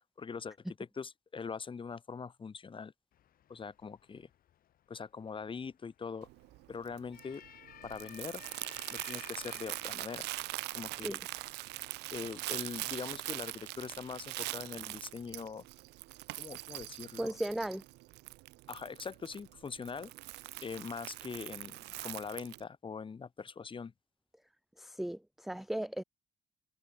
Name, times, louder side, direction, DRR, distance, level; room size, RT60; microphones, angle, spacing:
voice 1, 0.2-2.9 3.5-4.3 4.9-6.3 6.7-7.4 7.8-8.4 8.9-10.3 10.7-11.2 12.1-15.6 16.4-17.4 18.7-20.1 20.6-23.9, left 5 dB, 30° left, 3.5 m, -42 dB
sound 1, 3.1-14.4, left 11 dB, 60° left, 3.6 m, -58 dB
Crumpling crinkling, 6.2-22.6, right 20 dB, 90° right, 1.9 m, -43 dB
voice 2, 17.2-17.8 24.8-26.0, right 1 dB, ahead, 0.5 m, -36 dB
cardioid pair, 110°, 17 cm